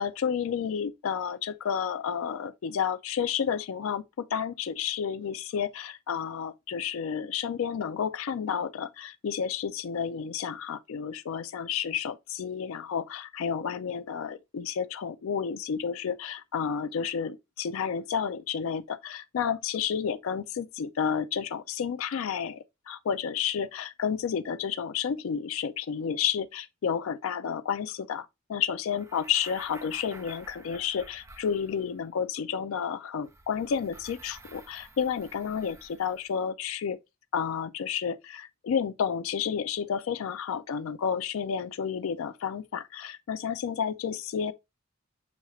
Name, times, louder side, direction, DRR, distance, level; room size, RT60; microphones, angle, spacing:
voice 1, 0.0-37.0 37.3-44.5, left 7 dB, 75° left, 0.4 m, -31 dB
sound 1, 28.9-32.1 33.2-36.4, right 2 dB, 15° right, 0.4 m, -51 dB
6.9 x 2.4 x 2.9 m
head